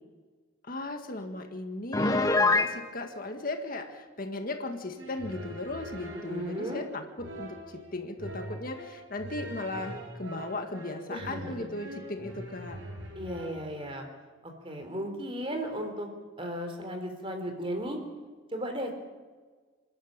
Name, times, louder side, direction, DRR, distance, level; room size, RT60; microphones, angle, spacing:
voice 1, 0.6-12.8, left 2 dB, 45° left, 5 dB, 1.9 m, -37 dB
Piano, 1.9-2.7, left 3 dB, 20° left, 1.3 m, -23 dB
sound 1, 5.0-13.5, right 1 dB, 65° right, 7.3 m, -43 dB
voice 2, 6.1-6.8 11.1-11.7 13.1-14.1 14.4-16.1 16.4-18.0 18.5-18.9, equal, 25° right, 5 dB, 3.7 m, -35 dB
27.5 x 12.0 x 8.8 m, 1.4 s
head